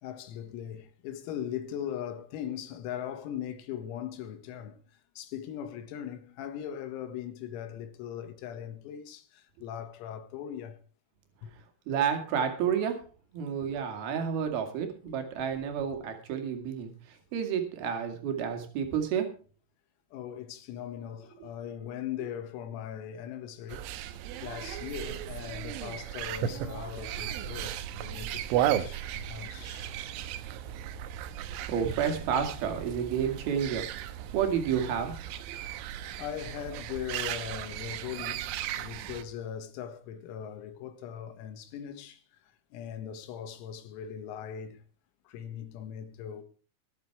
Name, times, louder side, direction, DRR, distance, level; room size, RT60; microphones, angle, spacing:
voice 1, 0.0-10.8 11.4-11.5 20.1-23.9 24.4-29.9 36.2-44.8 45.3-46.4, left 9 dB, 85° left, 4.2 m, -40 dB
voice 2, 11.9-13.0 13.3-19.3 24.3-24.4 31.5-33.9 34.3-35.2 35.5-35.6, right 7 dB, 55° right, 3.6 m, -30 dB
sound 1, 23.7-39.2, right 11 dB, 80° right, 3.2 m, -35 dB
22.0 x 7.5 x 4.7 m
omnidirectional pair, 6.0 m